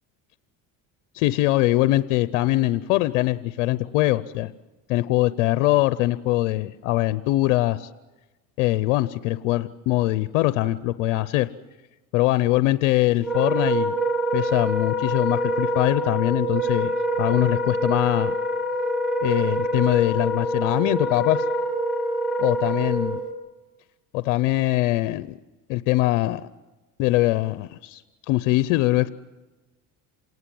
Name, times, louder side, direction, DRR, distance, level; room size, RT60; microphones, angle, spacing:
voice 1, 1.1-4.5 4.9-7.9 8.6-11.5 12.1-13.9 14.3-18.3 19.2-21.4 22.4-23.2 24.1-25.3 25.7-26.4 27.0-29.1, left 17 dB, 85° left, 14 dB, 0.8 m, -22 dB
Wind instrument woodwind instrument, 13.2-23.3, equal, ahead, 3.8 m, -25 dB
28.0 x 19.0 x 7.7 m, 1.1 s
supercardioid pair, 95°, 40 cm